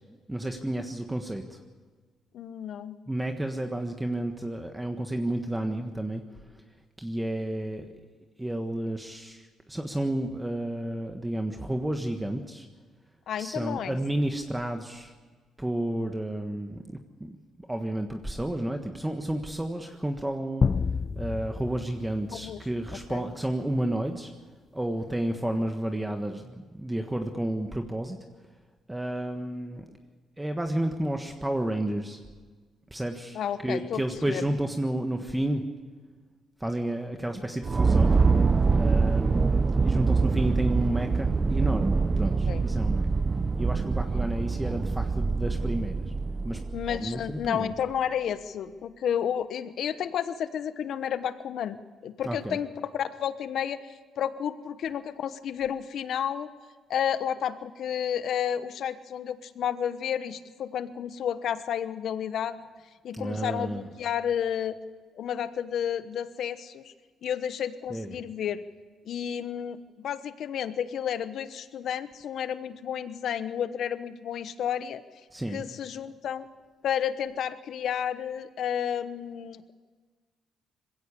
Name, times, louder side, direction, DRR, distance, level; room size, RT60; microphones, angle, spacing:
voice 1, 0.3-1.6 3.1-6.6 7.0-7.9 8.4-12.7 13.4-15.1 15.6-17.3 17.7-20.7 21.1-24.3 24.7-28.2 28.9-30.0 30.4-32.2 32.9-35.7 36.6-38.2 38.7-43.1 43.6-46.1 46.4-46.6 46.9-47.7 52.2-52.6 63.1-63.9 67.9-68.2 75.3-75.7, right 1 dB, 10° right, 5 dB, 1.5 m, -31 dB
voice 2, 2.3-3.0 13.3-14.0 22.3-22.6 23.1-23.2 33.3-34.0 34.3-34.4 42.5-42.6 46.7-51.8 52.0-56.5 56.9-62.6 63.0-64.8 65.1-66.9 67.2-68.6 69.1-75.0 75.5-76.5 76.8-79.7, left 9 dB, 70° left, 12 dB, 1.1 m, -31 dB
sound 1, 20.6-23.1, left 5 dB, 40° left, 0.5 m, -29 dB
sound 2, 37.6-47.2, right 4 dB, 30° right, 0.8 m, -24 dB
21.0 x 16.5 x 8.4 m, 1.4 s
cardioid pair, 90°, 0 cm